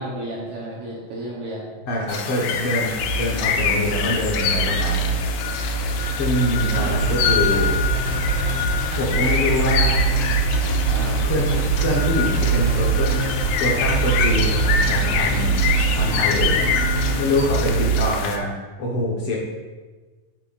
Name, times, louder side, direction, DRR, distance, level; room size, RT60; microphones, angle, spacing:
voice 1, 0.0-1.7 6.6-7.0, right 1 dB, 65° right, -4 dB, 2.1 m, -32 dB
voice 2, 1.9-5.2 6.1-7.7 9.0-10.0 10.9-13.2 13.6-16.6 16.9-19.4, left 1 dB, 65° left, -3 dB, 1.4 m, -25 dB
sound 1, 2.1-18.4, left 7 dB, 80° left, 1.8 m, -26 dB
sound 2, 2.9-18.0, right 6 dB, 40° right, 3.7 m, -24 dB
sound 3, 6.9-17.2, right 2 dB, 90° right, 3.3 m, -27 dB
8.9 x 8.8 x 2.5 m, 1.3 s
omnidirectional pair, 4.2 m